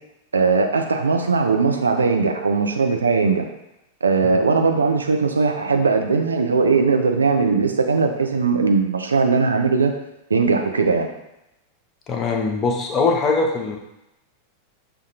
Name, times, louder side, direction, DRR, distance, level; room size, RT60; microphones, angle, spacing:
voice 1, 0.3-3.5 4.0-9.9 10.3-11.1, right 4 dB, 75° right, 4 dB, 0.4 m, -19 dB
voice 2, 12.1-13.8, left 4 dB, 30° left, 1 dB, 0.7 m, -21 dB
5.9 x 2.2 x 2.8 m, 0.90 s
figure-of-eight pair, 90°, 0 cm